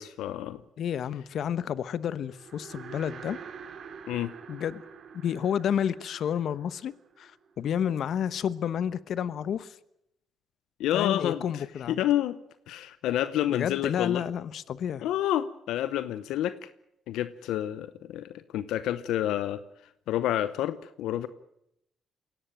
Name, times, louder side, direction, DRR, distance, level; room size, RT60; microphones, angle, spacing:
voice 1, 0.0-0.6 4.1-4.3 10.8-12.4 12.7-14.2 15.0-16.7 17.1-19.6 20.1-21.3, left 12 dB, 90° left, 14 dB, 0.8 m, -29 dB
voice 2, 0.8-3.4 4.5-4.8 5.1-9.8 10.9-12.0 13.5-15.1, left 9 dB, 65° left, 16 dB, 1.0 m, -30 dB
sound 1, 2.2-7.7, right 6 dB, 60° right, 3.4 m, -46 dB
22.0 x 17.5 x 9.1 m, 0.81 s
cardioid pair, 90°, 0 cm